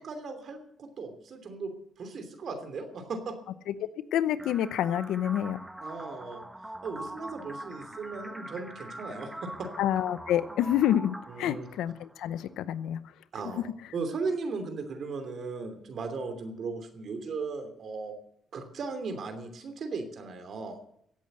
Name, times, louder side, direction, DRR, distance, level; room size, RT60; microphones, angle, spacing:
voice 1, 0.0-1.7 2.0-3.4 5.8-6.4 6.8-9.7 11.3-11.7 13.3-18.1 18.5-20.8, right 4 dB, 60° right, 7 dB, 2.9 m, -37 dB
voice 2, 4.1-5.6 9.8-13.0 13.4-13.6, left 11 dB, 85° left, 15 dB, 0.7 m, -28 dB
sound 1, 4.4-12.4, right 1 dB, 10° right, 1.2 m, -43 dB
15.5 x 8.5 x 7.9 m, 0.73 s
cardioid pair, 90°, 0 cm